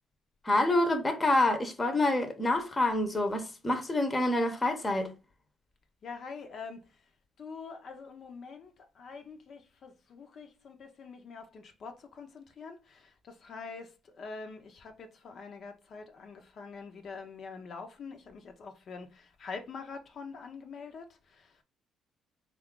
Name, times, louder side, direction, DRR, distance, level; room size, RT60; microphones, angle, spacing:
voice 1, 0.4-5.1, left 2 dB, 25° left, 0.8 m, -27 dB
voice 2, 6.0-6.9 7.4-21.5, left 5 dB, 55° left, 0.6 m, -45 dB
3.7 x 2.4 x 3.6 m
cardioid pair, 85°, 0 cm